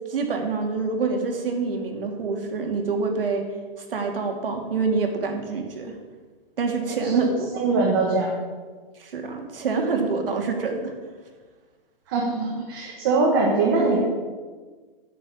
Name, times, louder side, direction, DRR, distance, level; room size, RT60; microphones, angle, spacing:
voice 1, 0.1-3.5 3.8-5.9 6.6-7.3 9.0-10.9, right 4 dB, 70° right, 3 dB, 2.8 m, -26 dB
voice 2, 7.5-8.3 12.1-14.0, right 3 dB, 25° right, -2 dB, 1.4 m, -22 dB
10.5 x 8.5 x 8.5 m, 1.4 s
hypercardioid pair, 180°, 29 cm